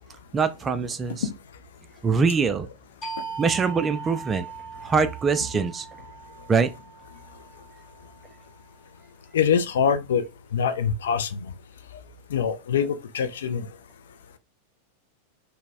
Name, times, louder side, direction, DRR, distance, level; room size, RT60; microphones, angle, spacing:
voice 1, 0.3-1.3 2.0-2.7 3.4-4.5 4.8-5.9 6.5-6.7, right 5 dB, 20° right, 0.3 m, -23 dB
sound 1, 3.0-8.3, right 6 dB, 30° left, 1.7 m, -40 dB
voice 2, 9.3-10.2 10.5-11.5 12.3-13.7, left 7 dB, 60° left, 0.3 m, -24 dB
3.8 x 2.0 x 2.4 m
figure-of-eight pair, 90°, 0 cm